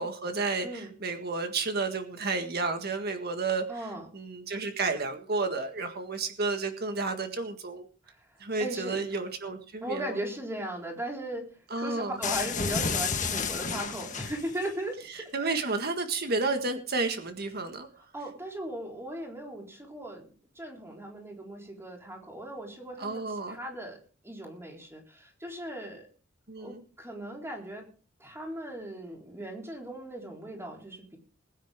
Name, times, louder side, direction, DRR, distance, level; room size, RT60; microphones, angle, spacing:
voice 1, 0.0-3.9 4.1-7.9 8.4-10.2 11.7-12.2 15.1-17.9 23.0-23.6 26.5-26.8, right 3 dB, 55° right, 6 dB, 1.7 m, -31 dB
voice 2, 3.7-4.1 8.6-9.0 9.8-11.5 11.8-15.7 18.1-24.0 24.2-26.1 26.6-27.9 28.2-31.2, right 1 dB, 15° right, 0 dB, 4.0 m, -38 dB
sound 1, 12.2-14.7, left 5 dB, 40° left, 1.5 m, -31 dB
21.0 x 9.9 x 3.7 m, 0.39 s
head